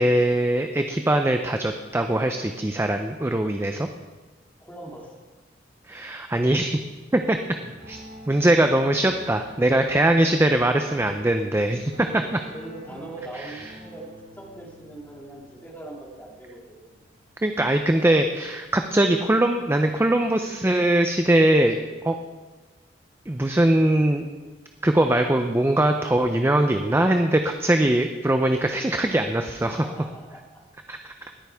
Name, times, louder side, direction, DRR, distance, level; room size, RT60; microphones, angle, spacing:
voice 1, 0.0-3.9 5.9-6.8 7.1-7.4 7.9-8.0 8.3-12.4 17.4-22.2 23.3-24.3 24.8-29.8 30.9-31.1, right 1 dB, 15° right, 6 dB, 0.5 m, -21 dB
voice 2, 4.6-5.1 12.0-17.0 29.6-30.5, right 2 dB, 10° left, -2 dB, 2.4 m, -41 dB
sound 1, 7.6-18.1, equal, 65° right, 4.9 m, -48 dB
19.0 x 9.3 x 3.5 m, 1.3 s
head